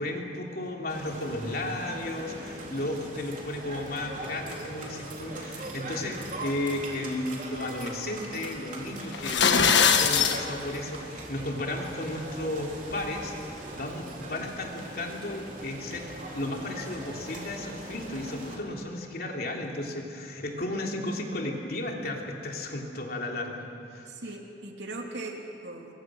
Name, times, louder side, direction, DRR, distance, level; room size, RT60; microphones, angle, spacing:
voice 1, 0.0-9.5 10.0-16.1 16.3-23.7 23.9-24.1, left 1 dB, 60° left, 0 dB, 3.2 m, -34 dB
sound 1, 0.9-18.6, right 2 dB, 50° right, 3.8 m, -41 dB
sound 2, 9.1-10.4, left 6 dB, 85° left, 1.5 m, -21 dB
voice 2, 24.1-25.9, right 2 dB, 80° right, 1 dB, 3.0 m, -39 dB
27.5 x 22.5 x 6.4 m, 2.7 s
head